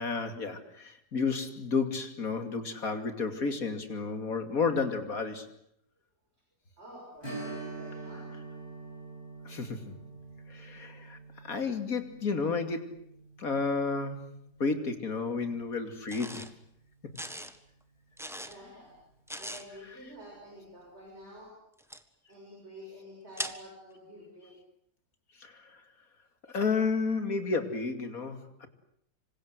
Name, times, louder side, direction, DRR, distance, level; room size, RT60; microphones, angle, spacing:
voice 1, 0.0-5.5 9.4-10.0 10.5-12.9 13.4-16.5 25.4-25.8 26.5-28.7, left 4 dB, 60° left, 7 dB, 3.0 m, -32 dB
voice 2, 6.8-8.3 18.4-19.0 19.4-21.5 22.3-24.6, equal, 40° right, -1 dB, 7.0 m, -49 dB
Strum, 7.2-16.4 16.7-16.8 19.4-19.6 20.0-20.1, right 3 dB, 30° left, 7.3 m, -46 dB
sound 1, 16.1-16.5 17.2-17.6 18.2-18.6 19.3-19.7 21.8-22.0 23.4-23.6, equal, ahead, 1.5 m, -39 dB
26.5 x 25.5 x 8.1 m, 0.71 s
omnidirectional pair, 1.7 m